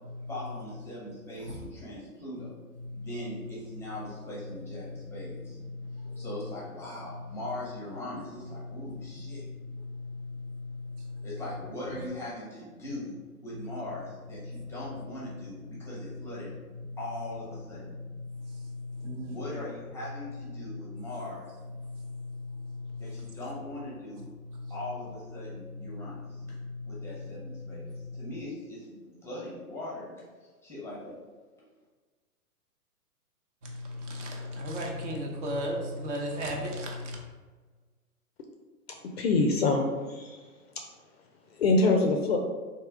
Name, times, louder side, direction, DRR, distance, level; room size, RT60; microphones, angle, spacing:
voice 1, 0.3-2.5 2.9-5.6 6.2-9.4 11.2-16.5 17.0-17.9 19.3-21.6 23.0-24.3 24.7-26.4 26.9-31.2, left 1 dB, 5° left, -6 dB, 0.7 m, -40 dB
voice 2, 5.7-6.2 9.8-11.3 14.4-14.6 18.3-19.4 20.9-21.0 21.8-23.2 24.5-24.7 26.5-27.0 27.7-28.0 33.6-37.2, left 1 dB, 50° right, 0 dB, 1.0 m, -37 dB
voice 3, 39.2-40.4 41.6-42.4, left 3 dB, 45° left, 3 dB, 0.4 m, -24 dB
3.4 x 2.8 x 3.4 m, 1.4 s
hypercardioid pair, 130°, 46 cm